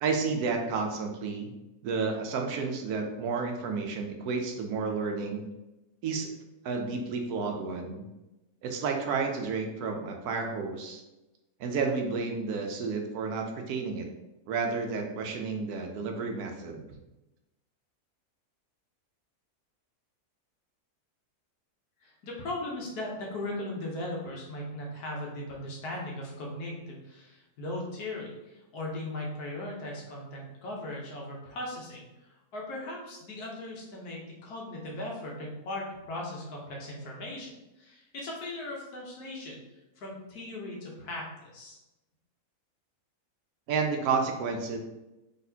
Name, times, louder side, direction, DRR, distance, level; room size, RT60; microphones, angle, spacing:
voice 1, 0.0-1.5 1.8-5.4 6.0-6.3 6.6-8.0 8.6-11.0 11.6-14.1 14.5-16.8 43.7-44.8, right 4 dB, 75° right, 3 dB, 1.1 m, -31 dB
voice 2, 22.0-37.5 37.8-39.6 40.0-41.8, left 1 dB, 75° left, -2 dB, 1.5 m, -38 dB
4.0 x 3.5 x 2.7 m, 1.0 s
omnidirectional pair, 1.6 m